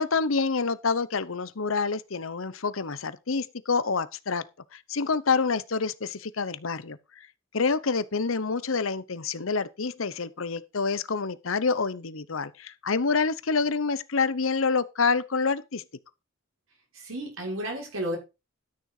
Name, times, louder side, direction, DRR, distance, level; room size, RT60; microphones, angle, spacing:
voice 1, 0.0-4.4 4.7-7.0 7.5-15.8, left 4 dB, 85° left, 0.9 m, -27 dB
voice 2, 16.9-18.2, right 1 dB, 85° right, 5.9 m, -32 dB
12.5 x 6.6 x 4.9 m
head